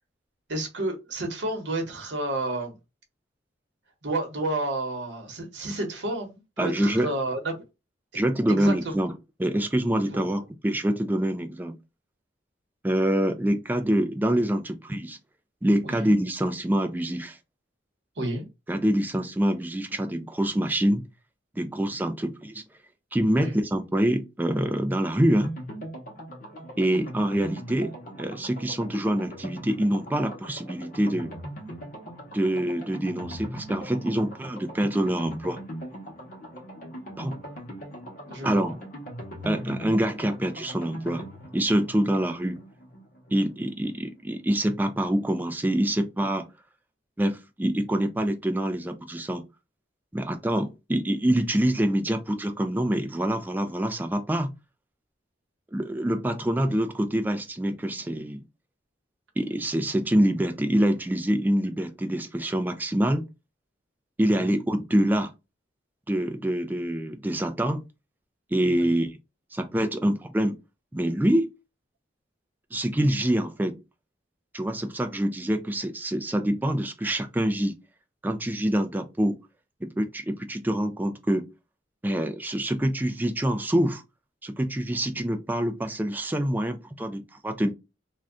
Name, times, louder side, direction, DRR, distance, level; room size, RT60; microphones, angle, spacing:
voice 1, 0.5-2.8 4.0-7.5 8.5-9.0 10.0-10.2 15.8-16.1 18.2-18.5 23.4-23.6 38.3-38.7 64.4-64.6 68.8-68.9, right 2 dB, 80° right, 0.9 m, -31 dB
voice 2, 6.6-7.1 8.1-9.1 9.4-11.8 12.8-15.2 15.6-17.4 18.7-21.0 21.6-22.6 23.1-25.5 26.8-31.3 32.3-35.6 37.2-37.3 38.4-38.8 39.5-41.2 41.5-42.6 43.3-46.5 47.2-49.4 50.1-54.5 55.7-58.4 59.4-63.3 64.2-65.3 66.1-67.8 68.5-69.1 69.5-70.6 70.9-71.5 72.7-73.8 74.5-77.8 78.2-79.4 79.8-81.5 82.0-84.0 84.4-87.7, right 1 dB, 10° right, 0.3 m, -25 dB
sound 1, 25.4-44.0 44.3-44.4 44.7-44.8, right 1 dB, 45° left, 0.9 m, -40 dB
2.5 x 2.2 x 3.5 m
head